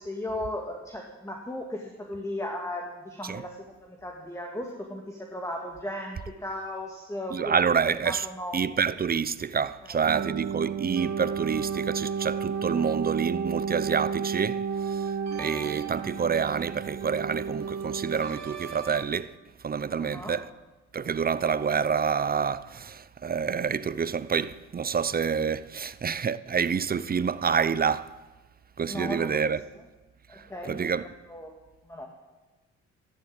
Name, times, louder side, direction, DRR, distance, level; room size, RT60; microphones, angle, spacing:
voice 1, 0.0-7.6 8.0-8.7 9.8-10.1 20.0-20.5 28.8-29.6 30.3-31.5 31.8-32.1, left 1 dB, 10° left, 2.1 m, -36 dB
voice 2, 7.3-8.3 8.5-15.1 15.4-19.3 19.6-20.5 20.9-28.1 28.8-29.6 30.3-31.1, right 6 dB, 30° right, 0.6 m, -28 dB
sound 1, 10.1-19.0, right 6 dB, 60° right, 2.3 m, -32 dB
14.0 x 11.5 x 8.7 m
cardioid pair, 90°, 30 cm